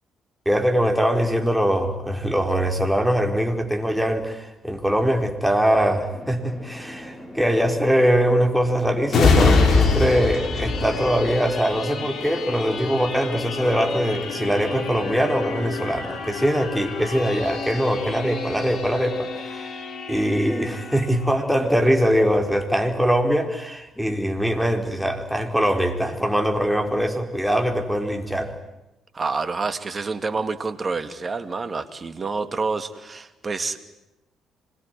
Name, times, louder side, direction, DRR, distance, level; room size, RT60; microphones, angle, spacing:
voice 1, 0.4-19.8 20.1-28.5, equal, 5° right, 4 dB, 4.8 m, -22 dB
sound 1, 6.1-16.1, left 1 dB, 30° left, 6.9 m, -41 dB
sound 2, 9.1-22.4 22.9-23.0, left 4 dB, 60° left, 4.2 m, -26 dB
voice 2, 29.1-33.8, right 4 dB, 35° right, 10 dB, 2.5 m, -28 dB
26.0 x 22.5 x 9.4 m, 0.93 s
hypercardioid pair, 50°, 0 cm